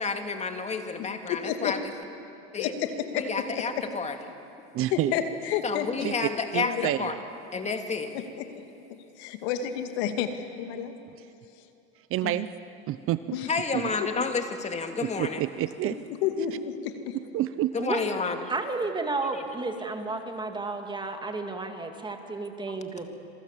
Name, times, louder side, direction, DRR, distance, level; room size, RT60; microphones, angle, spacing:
voice 1, 0.0-1.8 2.5-2.7 3.1-4.2 5.6-7.1 7.5-8.1 13.5-15.4 17.7-18.5, left 4 dB, 20° left, 6 dB, 2.2 m, -30 dB
voice 2, 1.3-1.7 2.5-3.5 4.9-6.1 6.6-6.9 8.4-8.5 9.2-10.9 12.2-12.4 13.3-13.5 14.0-14.2 16.2-17.1, left 9 dB, 75° left, 7 dB, 2.3 m, -30 dB
voice 3, 4.7-5.1 6.0-7.2 12.1-12.5 12.9-13.4 13.7-13.9 15.0-16.0 17.1-17.7, right 14 dB, 40° right, 14 dB, 0.7 m, -29 dB
voice 4, 18.5-23.1, right 3 dB, 15° right, 5 dB, 2.3 m, -32 dB
27.0 x 23.5 x 7.5 m, 2.7 s
supercardioid pair, 120°, 33 cm